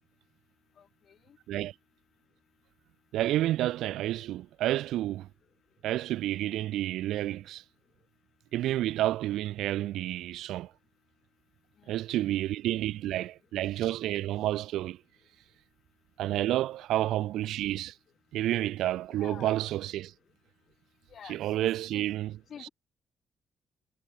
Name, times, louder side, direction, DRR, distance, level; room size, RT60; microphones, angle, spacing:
voice 1, 0.8-1.4 11.8-11.9 19.2-19.6 21.1-22.0 22.5-22.7, left 8 dB, 60° left, 2.3 m, -48 dB
voice 2, 3.1-5.3 5.8-7.6 8.5-10.7 11.9-15.0 16.2-17.9 18.3-20.1 21.2-22.7, right 14 dB, 85° right, 0.4 m, -30 dB
cardioid pair, 80°, 0 cm